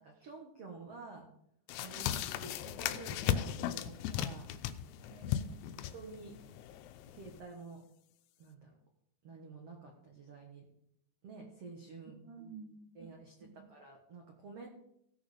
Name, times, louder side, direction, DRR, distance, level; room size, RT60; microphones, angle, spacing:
voice 1, 0.0-1.3 1.8-4.5 5.9-6.3 7.1-7.8 8.4-8.7 9.2-10.6 11.2-12.2 12.9-14.7, right 4 dB, 80° right, 1 dB, 1.3 m, -50 dB
sound 1, 1.7-7.4, left 11 dB, 90° left, 3.0 m, -37 dB
voice 2, 1.9-2.2 5.1-5.7 12.0-13.1 13.4-13.7, right 5 dB, 50° right, 3 dB, 1.6 m, -52 dB
16.5 x 6.4 x 5.1 m, 0.74 s
omnidirectional pair, 5.2 m